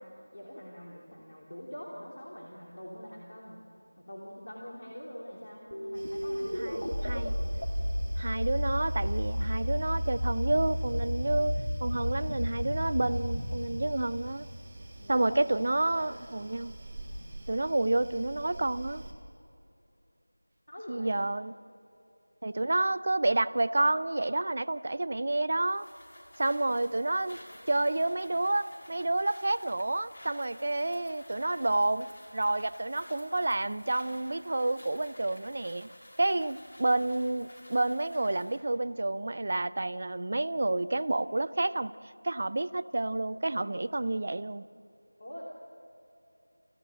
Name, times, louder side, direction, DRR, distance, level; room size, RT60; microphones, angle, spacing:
voice 1, 0.0-3.6 4.0-7.4 12.8-13.2 15.0-15.4 16.0-16.1 20.7-21.2 26.7-27.2 45.2-45.4, equal, 50° left, -3 dB, 3.2 m, -45 dB
sound 1, 5.7-15.0, equal, 75° left, 2.6 m, -32 dB
sound 2, 5.9-19.1, right 1 dB, 15° right, 1.8 m, -47 dB
voice 2, 7.0-7.3 8.2-14.5 15.1-16.7 17.5-19.0 20.9-21.5 22.4-25.9 26.4-27.4 27.7-35.9 36.2-41.9 42.2-44.6, right 2 dB, 35° right, 15 dB, 0.5 m, -29 dB
sound 3, 25.7-38.7, left 1 dB, 30° left, 2.6 m, -52 dB
29.0 x 15.5 x 7.7 m, 2.8 s
figure-of-eight pair, 175°, 0 cm